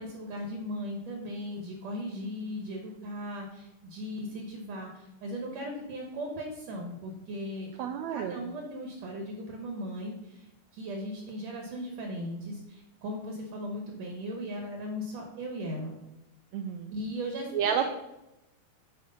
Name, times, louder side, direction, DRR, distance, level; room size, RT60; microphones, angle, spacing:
voice 1, 0.0-7.8 8.1-16.0 16.9-17.9, equal, 65° right, 1 dB, 2.1 m, -38 dB
voice 2, 7.8-8.4 16.5-16.9 17.5-17.9, right 8 dB, 85° right, 5 dB, 1.6 m, -30 dB
8.0 x 5.2 x 5.3 m, 0.94 s
omnidirectional pair, 3.7 m